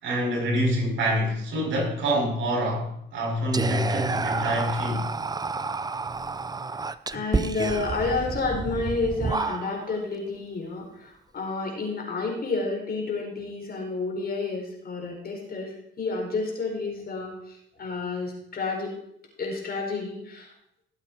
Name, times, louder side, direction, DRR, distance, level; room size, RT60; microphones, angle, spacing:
voice 1, 0.0-5.1, equal, 75° right, 0 dB, 5.9 m, -26 dB
Whispering, 3.5-10.0, right 4 dB, 20° right, 0.5 m, -30 dB
voice 2, 7.1-18.9 19.4-20.5, left 3 dB, 50° left, 0 dB, 4.6 m, -30 dB
17.5 x 8.0 x 4.5 m, 0.74 s
cardioid pair, 90°, 20 cm